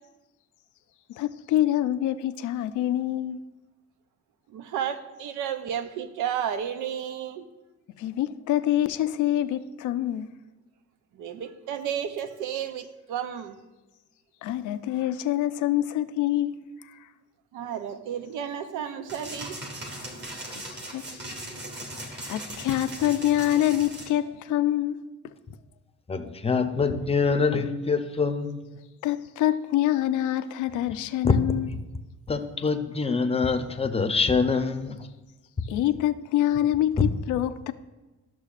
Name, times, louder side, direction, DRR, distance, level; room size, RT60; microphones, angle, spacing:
voice 1, 1.2-3.4 8.0-10.3 14.4-16.7 20.6-20.7 20.9-21.0 22.0-25.0 29.0-31.7 35.7-37.7, left 12 dB, 80° left, 0.5 m, -26 dB
voice 2, 4.5-7.4 11.1-13.6 17.5-19.6, right 9 dB, 85° right, 0.6 m, -32 dB
sound 1, 19.1-24.1, right 1 dB, 35° right, 1.7 m, -38 dB
voice 3, 26.1-28.6 31.2-31.4 32.3-35.0 37.0-37.1, left 4 dB, 20° left, 0.6 m, -24 dB
13.0 x 6.1 x 2.5 m
cardioid pair, 90°, 30 cm